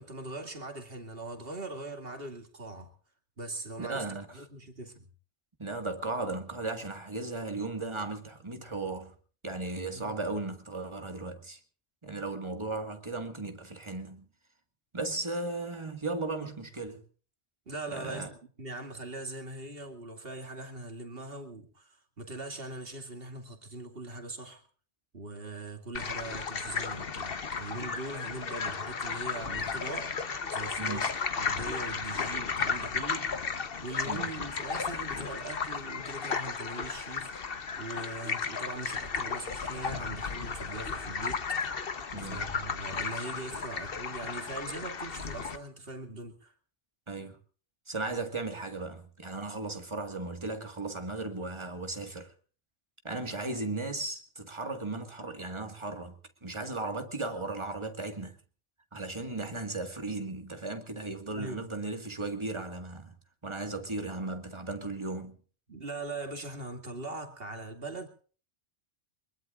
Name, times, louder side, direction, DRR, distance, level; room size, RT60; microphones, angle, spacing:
voice 1, 0.0-2.9 3.4-4.1 4.3-5.1 9.9-10.2 17.7-24.6 25.1-30.2 30.5-33.5 33.8-41.8 42.1-46.5 61.3-61.6 65.7-68.1, right 2 dB, 55° right, 2.6 m, -41 dB
voice 2, 3.8-4.4 5.6-9.2 9.4-11.6 12.0-14.3 14.9-17.0 17.9-18.3 30.8-31.1 34.0-34.3 42.1-42.4 47.1-47.4 47.9-52.3 53.0-58.4 58.9-63.2 63.4-65.4, right 2 dB, 25° right, 2.0 m, -36 dB
sound 1, 25.9-45.6, left 5 dB, 55° left, 1.3 m, -34 dB
23.5 x 21.0 x 2.5 m
omnidirectional pair, 1.2 m